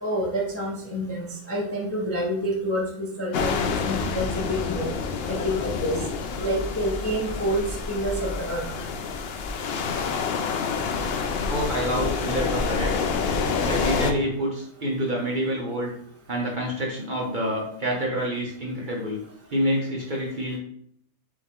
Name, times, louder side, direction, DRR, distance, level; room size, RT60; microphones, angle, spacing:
voice 1, 0.0-4.9 5.3-6.0 6.4-8.7, equal, 20° left, -3 dB, 0.4 m, -28 dB
sound 1, 3.3-14.1, left 5 dB, 70° left, 0.5 m, -28 dB
voice 2, 11.5-13.0 13.6-15.9 16.3-19.2 19.5-20.6, equal, 45° right, -2 dB, 0.7 m, -27 dB
4.8 x 2.5 x 3.5 m, 0.66 s
omnidirectional pair, 1.6 m